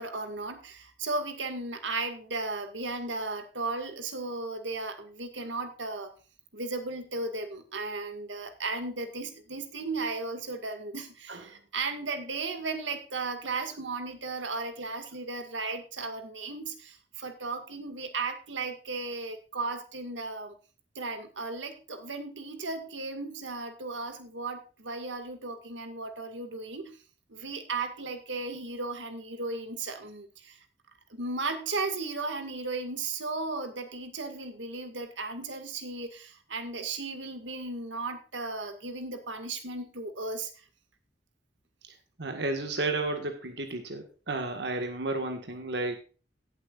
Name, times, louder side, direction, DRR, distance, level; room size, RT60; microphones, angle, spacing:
voice 1, 0.0-6.1 6.5-20.5 21.0-27.0 27.3-30.6 31.1-40.5, right 3 dB, 85° right, 8 dB, 2.1 m, -35 dB
voice 2, 42.2-46.0, right 2 dB, 65° right, 5 dB, 1.8 m, -32 dB
18.0 x 8.1 x 2.5 m, 0.35 s
head